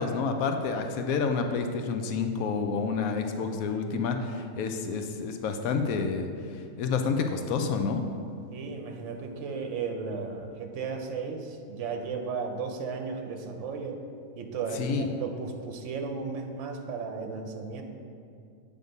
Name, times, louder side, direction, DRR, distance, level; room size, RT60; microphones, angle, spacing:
voice 1, 0.0-6.3 6.8-8.1 14.7-15.1, left 5 dB, 85° left, 5 dB, 1.0 m, -29 dB
voice 2, 8.5-14.0 14.4-17.8, right 5 dB, 65° right, 4 dB, 1.0 m, -35 dB
7.9 x 3.6 x 5.2 m, 2.4 s
omnidirectional pair, 1.4 m